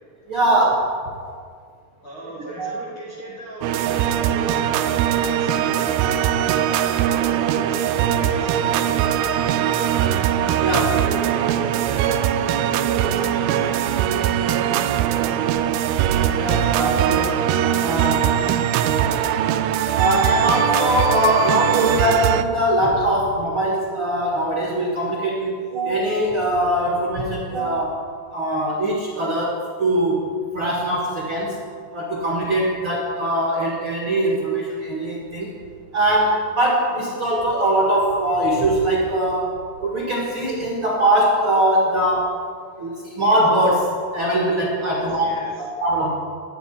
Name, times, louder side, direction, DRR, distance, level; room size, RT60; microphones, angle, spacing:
voice 1, 0.3-0.9 2.6-2.7 10.6-11.0 15.5-15.6 16.3-17.4 17.8-18.3 20.0-30.3 30.5-31.6 31.9-35.5 35.9-42.3 42.8-45.3 45.6-46.1, right 1 dB, 45° right, -3 dB, 1.9 m, -21 dB
voice 2, 2.0-5.9 6.4-10.2 10.8-14.0 44.8-45.5, equal, 40° left, -5 dB, 2.0 m, -37 dB
sound 1, 3.6-22.4, right 10 dB, 85° right, 2.2 m, -21 dB
12.0 x 8.0 x 9.7 m, 2.1 s
omnidirectional pair, 4.8 m